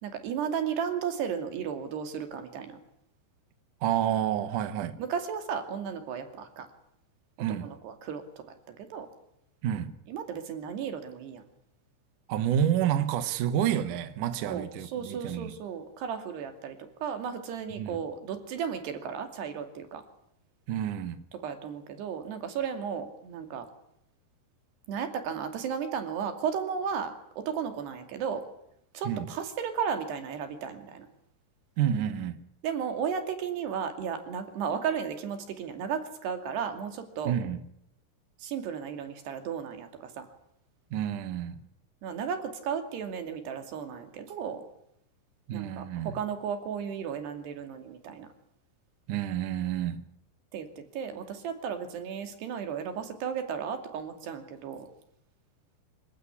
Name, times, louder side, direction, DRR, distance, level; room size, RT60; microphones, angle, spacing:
voice 1, 0.0-2.8 5.0-6.7 7.6-8.2 8.7-9.1 10.1-11.4 14.4-20.0 21.4-23.7 24.9-28.4 28.9-31.1 32.6-37.4 38.4-40.3 42.0-44.7 45.5-48.3 50.5-54.9, right 7 dB, 60° right, 4.3 m, -34 dB
voice 2, 3.8-5.0 7.4-7.7 9.6-9.9 12.3-15.5 17.8-18.0 20.7-21.2 29.0-29.3 31.8-32.4 37.3-37.6 40.9-41.6 45.5-46.2 49.1-50.0, right 10 dB, 85° right, 1.8 m, -29 dB
25.0 x 16.0 x 9.9 m
omnidirectional pair, 5.8 m